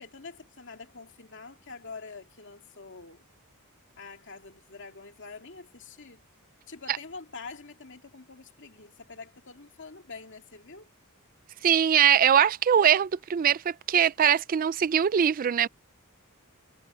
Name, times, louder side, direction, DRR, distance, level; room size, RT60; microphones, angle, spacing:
voice 1, 0.0-3.3 4.0-6.2 6.7-10.9, left 4 dB, 55° left, 2.5 m, -45 dB
voice 2, 11.6-15.7, right 9 dB, 40° right, 0.3 m, -22 dB
head